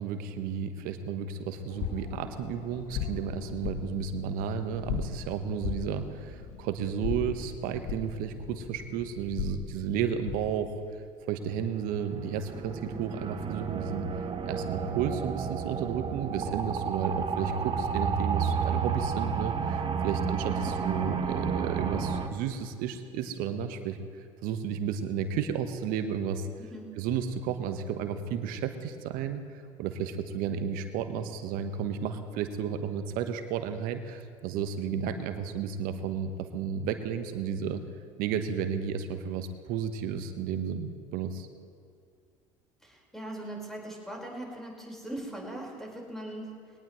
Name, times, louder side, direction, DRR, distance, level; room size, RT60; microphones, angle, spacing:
voice 1, 0.0-10.8 11.3-14.1 14.4-26.5 26.9-37.8 38.2-41.5, right 7 dB, 60° right, 8 dB, 1.3 m, -33 dB
sound 1, 1.7-10.6, left 7 dB, 55° left, 1.4 m, -38 dB
sound 2, 11.6-22.3, right 6 dB, 30° right, 1.4 m, -31 dB
voice 2, 42.8-46.6, right 1 dB, ahead, -2 dB, 5.0 m, -40 dB
21.5 x 18.5 x 3.2 m, 2.3 s
hypercardioid pair, 65°, 17 cm